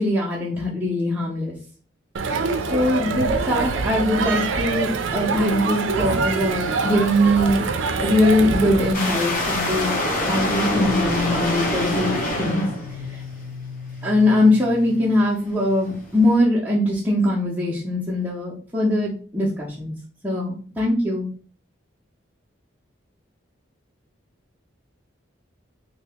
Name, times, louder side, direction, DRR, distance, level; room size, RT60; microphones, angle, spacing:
voice 1, 0.0-1.5 2.7-7.6 8.0-12.7 14.0-19.9 20.2-21.3, left 1 dB, 10° right, -9 dB, 0.7 m, -21 dB
Crowd, 2.1-8.9, right 4 dB, 80° right, 0.4 m, -24 dB
sound 1, 8.9-16.4, left 1 dB, 45° left, 1.0 m, -26 dB
2.8 x 2.7 x 3.4 m, 0.41 s
head